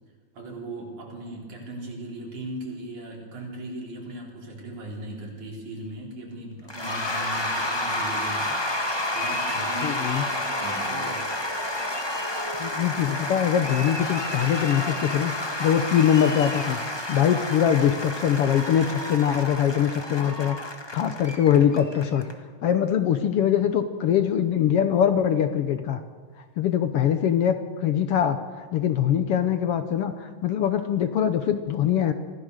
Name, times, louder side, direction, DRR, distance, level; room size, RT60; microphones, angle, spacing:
voice 1, 0.3-8.5 9.1-11.3, right 1 dB, 85° right, -1 dB, 5.4 m, -38 dB
Cheering / Applause / Crowd, 6.7-22.3, left 1 dB, 15° left, 0.8 m, -30 dB
voice 2, 9.8-10.2 12.6-15.3 15.6-16.8 17.1-20.6 20.9-22.2 22.6-26.0 26.6-32.1, left 9 dB, 65° left, 9 dB, 1.6 m, -23 dB
25.0 x 16.0 x 6.6 m, 1.5 s
omnidirectional pair, 3.3 m